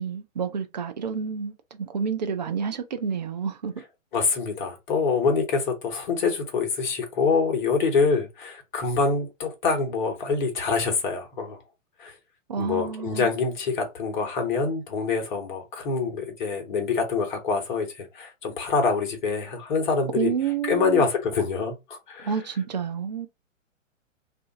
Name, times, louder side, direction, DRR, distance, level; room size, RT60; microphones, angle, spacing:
voice 1, 0.0-3.8 12.5-13.3 20.1-21.1 22.2-23.3, right 6 dB, 35° right, 0.4 m, -29 dB
voice 2, 4.1-11.6 12.0-12.1 12.6-20.3 20.6-22.3, left 4 dB, 35° left, 1.0 m, -25 dB
2.5 x 2.4 x 3.5 m
figure-of-eight pair, 120°, 39 cm